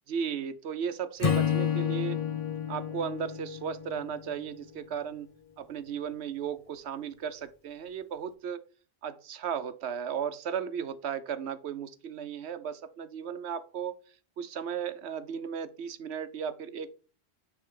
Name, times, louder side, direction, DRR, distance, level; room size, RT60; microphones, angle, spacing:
voice 1, 0.1-2.2 2.7-5.3 5.6-8.6 9.0-14.0 14.4-16.9, right 7 dB, 80° right, 12 dB, 1.0 m, -35 dB
Acoustic guitar / Strum, 1.2-4.5, left 8 dB, 35° left, 0.7 m, -30 dB
9.7 x 3.5 x 3.7 m, 0.37 s
omnidirectional pair, 1.1 m